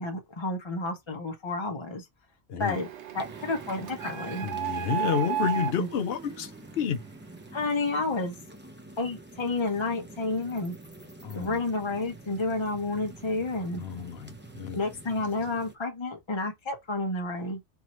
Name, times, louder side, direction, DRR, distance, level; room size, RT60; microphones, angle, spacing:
voice 1, 0.0-2.1 2.5-2.9 3.1-4.5 5.8-5.9 7.5-8.4 9.0-10.7 11.3-13.8 14.7-17.6, left 2 dB, 25° left, 1.1 m, -30 dB
Printer, 2.6-7.2, right 12 dB, 70° right, 0.9 m, -34 dB
sound 1, 3.2-15.8, right 1 dB, 10° right, 0.7 m, -47 dB
voice 2, 4.4-7.0 11.2-11.6 13.8-14.8, left 8 dB, 60° left, 0.9 m, -30 dB
3.5 x 3.0 x 4.3 m
omnidirectional pair, 1.3 m